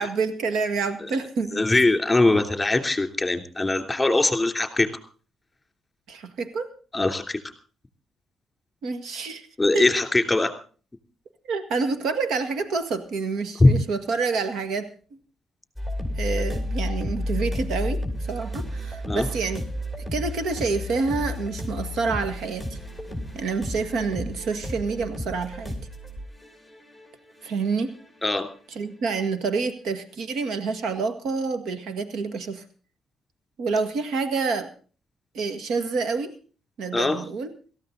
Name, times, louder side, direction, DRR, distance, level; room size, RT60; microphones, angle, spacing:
voice 1, 0.0-1.7 6.1-6.7 8.8-9.5 9.7-9.9 11.4-14.9 16.2-18.0 18.3-19.6 20.1-22.8 23.3-25.7 27.4-28.0 28.8-32.6 33.6-34.7 35.3-36.3 36.8-37.5, right 4 dB, 75° right, 9 dB, 1.8 m, -28 dB
voice 2, 1.5-4.9 6.9-7.4 9.6-10.5 13.6-13.7 19.1-19.3 28.2-28.5 36.9-37.2, left 2 dB, 15° left, 7 dB, 3.0 m, -21 dB
sound 1, 15.8-28.5, left 1 dB, 15° right, 6.6 m, -32 dB
18.0 x 14.0 x 3.9 m, 0.39 s
cardioid pair, 90°, 0 cm